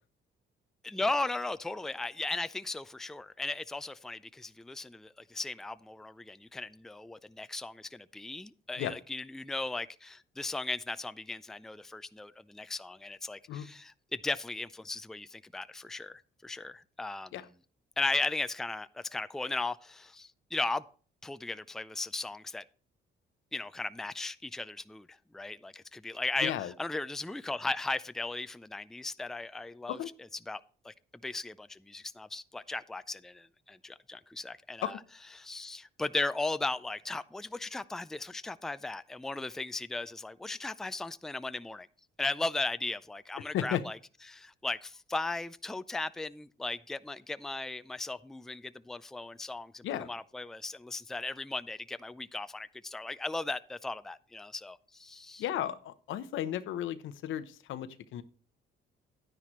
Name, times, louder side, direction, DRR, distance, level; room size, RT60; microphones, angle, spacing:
voice 1, 0.8-17.3 18.0-20.8 21.2-22.6 23.5-30.0 30.5-30.9 31.2-35.0 35.4-41.9 42.2-44.0 44.3-55.4, left 3 dB, ahead, 0.4 m, -37 dB
voice 2, 26.4-26.7 29.9-30.1 34.8-35.0 43.5-43.8 49.8-50.1 55.4-58.2, left 11 dB, 80° left, 0.8 m, -34 dB
10.5 x 9.8 x 3.1 m
cardioid pair, 90°, 20 cm